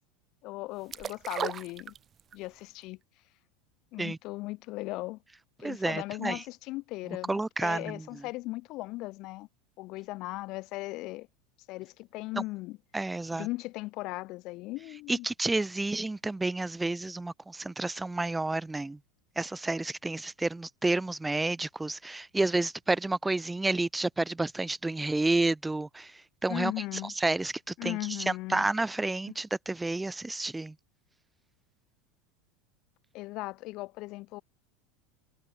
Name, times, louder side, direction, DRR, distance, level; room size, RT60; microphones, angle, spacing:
voice 1, 0.4-1.9 2.3-3.0 3.9-5.2 5.6-9.5 9.8-11.3 11.7-12.8 13.3-15.3 26.5-27.1 27.8-28.6 29.3-29.4 33.1-34.4, left 20 dB, 55° left, 2.0 m, -37 dB
sound 1, 0.9-2.5 2.8-2.9, right 8 dB, 30° right, 1.9 m, -36 dB
voice 2, 5.6-6.4 7.3-8.2 12.4-12.5 12.9-13.5 15.1-19.0 19.4-26.1 26.4-26.7 27.2-28.0 28.3-30.7, right 2 dB, 10° right, 0.3 m, -30 dB
hypercardioid pair, 100°, 0 cm